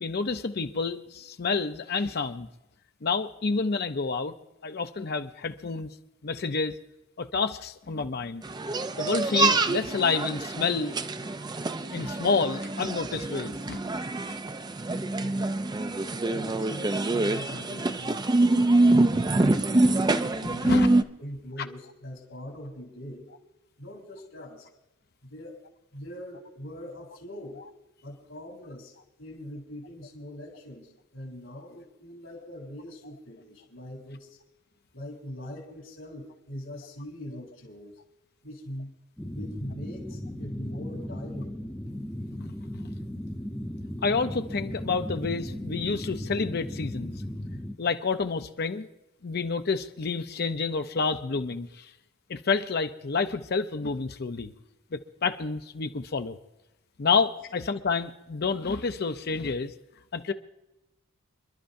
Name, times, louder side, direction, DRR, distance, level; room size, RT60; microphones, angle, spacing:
voice 1, 0.0-2.5 3.0-4.3 4.6-5.9 6.2-6.7 7.2-8.4 9.0-11.0 11.9-13.8 20.4-20.9 42.4-42.5 44.0-47.1 47.8-48.9 49.2-51.9 52.3-54.5 54.9-56.4 57.0-59.7 60.1-60.3, left 4 dB, 50° left, 8 dB, 0.6 m, -29 dB
sound 1, 8.4-21.0, right 2 dB, 20° right, 0.4 m, -25 dB
voice 2, 14.9-15.8 16.2-18.2 18.8-20.8 21.2-23.3 23.8-24.7 25.2-25.6 25.9-27.6 28.0-34.4 34.9-38.0 38.4-38.9 39.3-41.6, equal, 80° left, -1 dB, 3.0 m, -42 dB
sound 2, 39.2-47.7, left 1 dB, 5° left, 0.8 m, -36 dB
28.5 x 11.5 x 2.6 m, 0.96 s
head